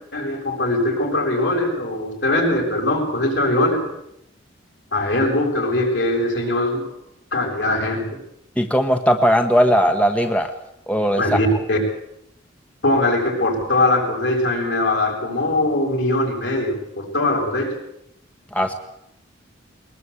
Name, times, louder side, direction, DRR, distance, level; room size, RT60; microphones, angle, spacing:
voice 1, 0.1-3.8 4.9-6.9 7.3-8.2 11.2-11.8 12.8-17.7, left 1 dB, 70° left, 1 dB, 7.3 m, -21 dB
voice 2, 8.6-10.5 10.9-11.4 18.5-18.7, equal, 5° left, 5 dB, 1.2 m, -18 dB
22.0 x 20.5 x 8.4 m, 0.79 s
head